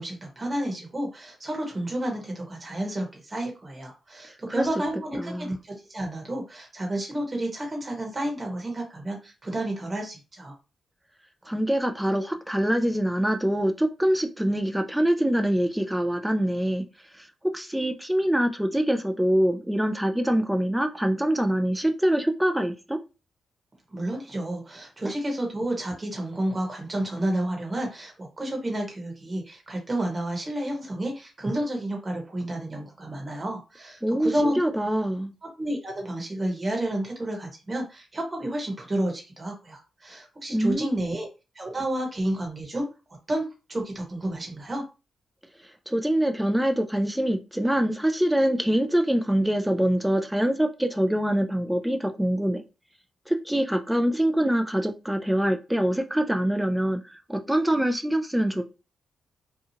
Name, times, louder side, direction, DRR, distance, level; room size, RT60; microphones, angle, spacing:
voice 1, 0.0-10.5 23.9-34.6 35.6-41.3 41.5-42.9 43.3-44.8, right 1 dB, 25° right, 1.1 m, -30 dB
voice 2, 5.2-5.5 11.5-16.8 17.2-17.3 17.5-23.0 34.0-35.3 40.5-41.0 45.9-52.6 53.3-58.6, right 1 dB, 5° right, 0.4 m, -24 dB
2.8 x 2.3 x 2.8 m
cardioid pair, 85°, 0 cm